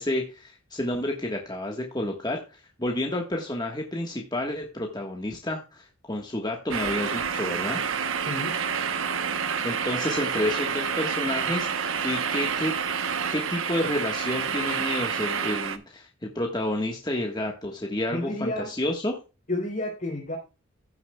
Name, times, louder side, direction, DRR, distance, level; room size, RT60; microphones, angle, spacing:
voice 1, 0.0-7.8 9.6-12.7 13.3-19.1, left 1 dB, 20° left, 1 dB, 1.4 m, -30 dB
sound 1, 6.7-15.8, right 6 dB, 70° right, 0.9 m, -28 dB
voice 2, 8.2-8.6 18.1-18.7 19.5-20.4, left 1 dB, 40° left, -4 dB, 2.9 m, -30 dB
15.5 x 7.0 x 2.3 m, 0.30 s
head